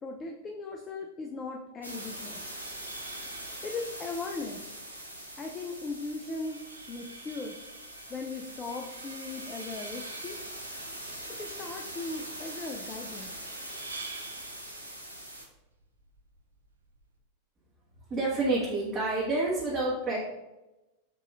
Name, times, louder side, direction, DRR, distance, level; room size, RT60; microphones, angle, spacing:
voice 1, 0.0-2.4 3.6-4.6 5.4-6.6 6.9-7.6 8.1-10.4 11.3-13.3, left 3 dB, 25° left, 2 dB, 0.5 m, -38 dB
sound 1, 1.8-15.4, right 1 dB, 85° left, 0.8 m, -42 dB
sound 2, 2.3-17.2, right 3 dB, 75° right, 0.5 m, -49 dB
voice 2, 18.1-20.2, right 2 dB, 20° right, -8 dB, 1.3 m, -28 dB
7.5 x 2.9 x 2.4 m, 1.0 s
figure-of-eight pair, 90°, 0 cm